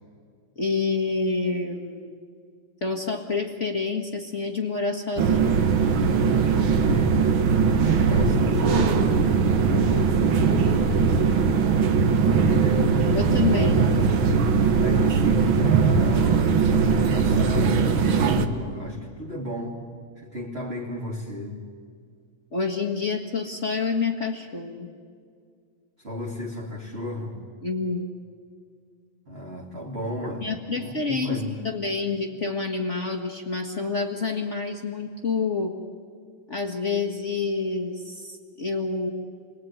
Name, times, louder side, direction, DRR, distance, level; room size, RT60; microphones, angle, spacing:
voice 1, 0.5-2.2 2.8-5.6 12.5-12.6 13.1-13.7 22.5-24.9 27.6-28.0 30.4-35.7 36.5-39.1, left 4 dB, 35° left, 2 dB, 1.2 m, -28 dB
sound 1, 5.2-18.5, right 5 dB, 55° right, 1.5 m, -20 dB
voice 2, 6.8-9.1 9.9-10.9 12.2-13.0 13.5-14.5 14.7-19.9 20.2-21.6 26.0-27.4 29.3-30.5 30.8-31.6, left 1 dB, 20° right, -3 dB, 2.4 m, -34 dB
28.5 x 21.0 x 9.6 m, 2.1 s
omnidirectional pair, 3.7 m